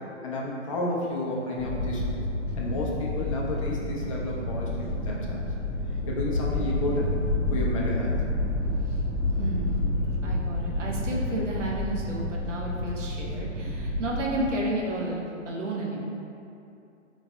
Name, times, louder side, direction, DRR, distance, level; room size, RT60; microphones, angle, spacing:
voice 1, 0.0-2.2 2.6-5.4 6.1-7.2 7.5-8.2, left 2 dB, 30° left, -3 dB, 0.4 m, -31 dB
sound 1, 1.6-14.5, left 1 dB, 25° right, 0.8 m, -29 dB
voice 2, 8.9-9.9 10.2-16.0, right 1 dB, 70° right, -3 dB, 0.8 m, -32 dB
3.9 x 3.1 x 2.2 m, 2.7 s
figure-of-eight pair, 120°, 37 cm